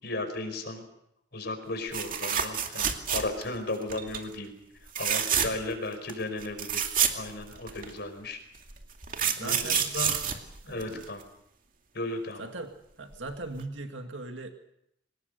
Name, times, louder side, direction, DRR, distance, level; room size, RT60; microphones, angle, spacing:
voice 1, 0.0-0.8 1.3-4.5 4.8-6.8 7.1-8.4 9.3-10.1 10.6-11.2 11.9-12.4, left 2 dB, 60° left, 7 dB, 5.0 m, -35 dB
sound 1, 1.9-3.6 3.9-4.2 4.9-5.7 6.1-6.2 6.4-7.9 8.7-11.2 13.1-13.3 13.6-13.7, right 8 dB, 50° right, 2.4 m, -28 dB
voice 2, 9.3-9.8 10.7-11.1 12.4-12.7 13.0-14.5, right 2 dB, 85° right, 5 dB, 2.1 m, -39 dB
24.5 x 20.0 x 6.7 m, 0.79 s
head